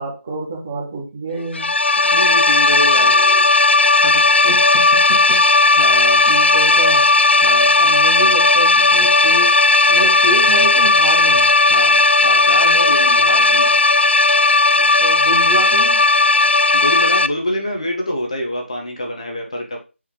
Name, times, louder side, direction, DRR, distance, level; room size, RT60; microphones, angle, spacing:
voice 1, 0.0-1.7 2.7-3.5 4.4-5.5 6.3-7.1 7.7-9.6 9.9-11.5 14.7-16.0, right 2 dB, 15° right, -4 dB, 1.1 m, -28 dB
sound 1, 1.5-17.3, left 3 dB, 60° left, 0.4 m, -14 dB
voice 2, 2.1-3.2 4.0-4.3 5.8-6.3 7.4-7.7 11.7-13.8 16.7-19.8, left 1 dB, 30° left, 1 dB, 1.2 m, -26 dB
6.5 x 4.7 x 3.7 m, 0.30 s
figure-of-eight pair, 180°, 7 cm